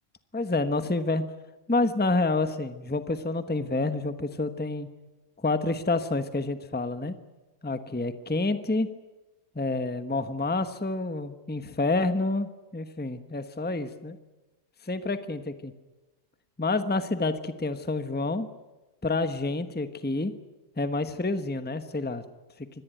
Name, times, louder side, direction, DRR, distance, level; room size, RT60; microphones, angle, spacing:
voice 1, 0.3-1.2 1.7-4.9 5.4-7.2 7.6-8.9 9.5-14.2 14.8-15.7 16.6-18.5 19.0-20.3 20.8-22.2, left 2 dB, 10° left, 10 dB, 1.1 m, -28 dB
24.5 x 18.5 x 9.1 m, 1.1 s
omnidirectional pair, 1.5 m